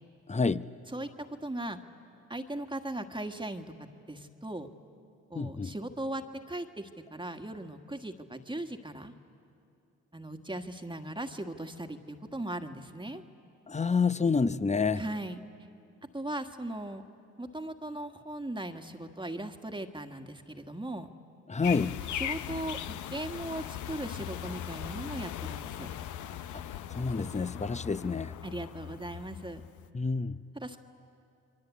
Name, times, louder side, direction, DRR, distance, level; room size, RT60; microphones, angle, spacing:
voice 1, 0.3-0.6 5.3-5.7 13.7-15.0 21.5-22.0 26.9-28.3 29.9-30.4, left 4 dB, 25° left, 14 dB, 0.8 m, -28 dB
voice 2, 1.4-1.8 2.3-3.7 4.1-4.7 5.3-9.1 10.1-13.2 14.9-15.4 16.1-17.0 17.4-21.1 22.1-25.9 28.4-29.6 30.5-30.8, right 1 dB, 15° right, 5 dB, 1.6 m, -38 dB
sound 1, 21.6-29.9, left 10 dB, 85° left, 0.7 m, -39 dB
28.0 x 23.0 x 8.4 m, 2.5 s
supercardioid pair, 50°, 29 cm